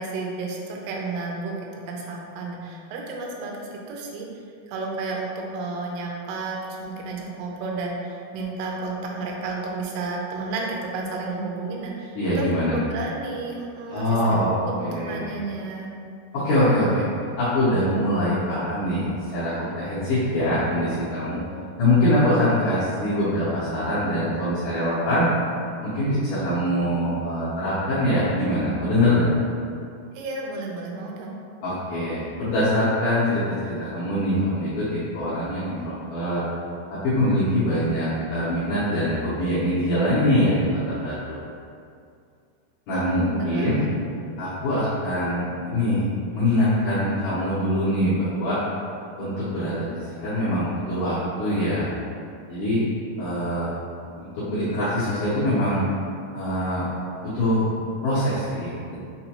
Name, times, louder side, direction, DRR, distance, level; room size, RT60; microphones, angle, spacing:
voice 1, 0.0-4.3 4.7-14.7 15.0-15.9 30.1-31.4 42.9-43.9, right 3 dB, 85° right, -1 dB, 2.5 m, -32 dB
voice 2, 12.1-12.7 13.9-14.5 14.8-15.3 16.3-17.0 17.4-21.4 21.8-25.3 25.8-29.3 31.6-36.4 36.9-41.4 42.9-43.8 44.4-46.0 46.3-48.6 49.2-51.9 52.5-52.8 53.2-53.7 54.2-55.8 56.3-56.9 57.2-57.7 58.0-58.9, left 1 dB, 80° left, -13 dB, 1.9 m, -23 dB
6.5 x 2.2 x 2.8 m, 2.4 s
omnidirectional pair, 4.9 m